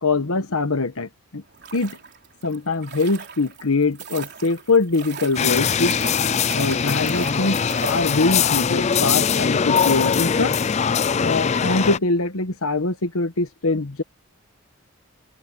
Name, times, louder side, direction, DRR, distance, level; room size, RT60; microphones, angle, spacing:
voice 1, 0.0-1.4 1.7-2.0 2.4-5.9 6.5-7.6 7.9-10.5 11.2-14.0, left 3 dB, 75° left, 1.3 m, -23 dB
sound 1, 1.4-8.6 8.9-9.0, right 6 dB, 50° right, 4.1 m, -38 dB
sound 2, 5.4-12.0, left 6 dB, 30° left, 0.4 m, -21 dB
head